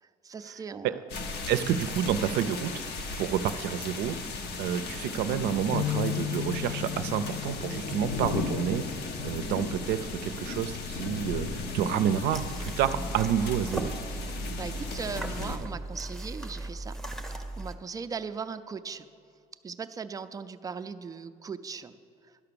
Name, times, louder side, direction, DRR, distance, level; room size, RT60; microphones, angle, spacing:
voice 1, 0.2-1.0 14.1-17.0 17.3-19.1 19.6-21.9, right 5 dB, 20° right, 10 dB, 0.4 m, -38 dB
sound 1, 1.1-15.6, left 4 dB, 75° left, 1.0 m, -36 dB
voice 2, 1.5-2.9 3.2-4.2 4.6-8.8 9.2-13.9, right 9 dB, 80° right, 11 dB, 0.5 m, -29 dB
sound 2, 5.7-10.0 10.5-10.7 11.5-12.0, left 14 dB, 50° left, 0.4 m, -37 dB
sound 3, 12.3-17.7, right 1 dB, ahead, 0.7 m, -37 dB
11.0 x 5.9 x 6.8 m, 2.4 s
cardioid pair, 110°, 17 cm